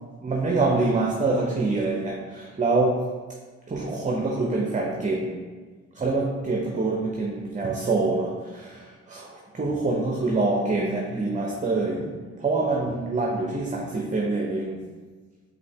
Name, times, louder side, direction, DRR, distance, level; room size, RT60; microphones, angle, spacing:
voice 1, 0.2-3.0 3.7-5.4 5.9-14.8, right 3 dB, 20° right, -1 dB, 0.7 m, -25 dB
5.1 x 2.8 x 3.4 m, 1.4 s
hypercardioid pair, 50°, 34 cm